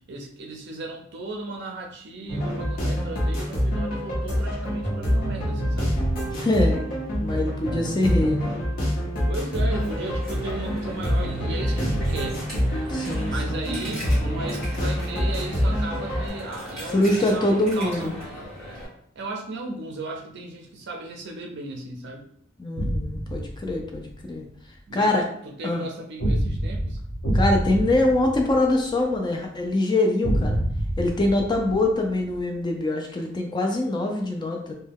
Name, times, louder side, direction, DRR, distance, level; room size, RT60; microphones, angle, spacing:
voice 1, 0.1-5.9 9.3-12.4 13.3-18.1 19.2-22.3 24.9-25.1 25.4-27.0, right 2 dB, 60° right, 2 dB, 0.5 m, -36 dB
sound 1, 2.3-16.3, equal, 45° left, 0.8 m, -26 dB
voice 2, 6.2-6.9 7.1-8.5 12.9-13.6 16.9-18.1 22.6-24.5 24.9-25.3 25.6-25.9 27.3-30.6 31.0-34.7, left 2 dB, 20° left, 2 dB, 0.3 m, -24 dB
Coin (dropping), 9.7-18.9, equal, 5° left, 1.2 m, -38 dB
sound 2, 22.8-24.1 26.2-29.2 30.2-32.4, right 1 dB, 60° left, 1.2 m, -27 dB
2.2 x 2.2 x 3.3 m, 0.65 s
head